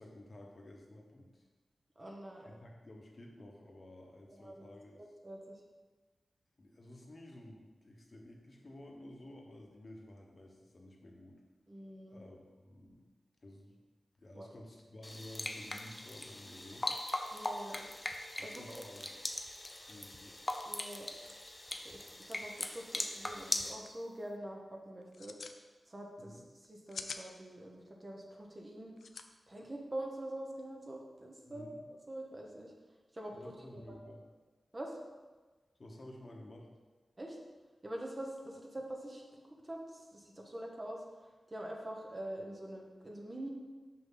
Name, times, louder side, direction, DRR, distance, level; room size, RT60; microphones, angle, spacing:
voice 1, 0.0-1.5 2.4-5.0 6.6-11.4 12.1-13.0 13.4-13.8 14.1-16.9 18.4-19.1 19.7-20.4 26.2-26.4 31.5-31.8 33.3-34.2 35.8-36.7, left 1 dB, 45° left, 0 dB, 1.1 m, -53 dB
voice 2, 2.0-2.6 4.3-4.6 5.0-5.6 11.7-12.2 14.3-14.5 17.3-17.8 18.4-18.9 20.6-21.1 21.7-25.3 25.9-26.4 26.7-28.9 29.5-31.7 32.1-32.7 33.1-33.3 33.7-34.0 34.7-35.0 37.2-37.4 37.8-41.0 41.5-43.5, right 1 dB, 35° right, 0 dB, 1.1 m, -45 dB
sound 1, 15.0-23.7, left 1 dB, 20° left, 0.6 m, -40 dB
sound 2, 23.5-23.6 23.9-24.2 25.0-25.6 26.6-27.2 29.0-29.2, left 4 dB, 75° left, 0.4 m, -44 dB
5.8 x 5.2 x 4.0 m, 1.3 s
cardioid pair, 65°, 0 cm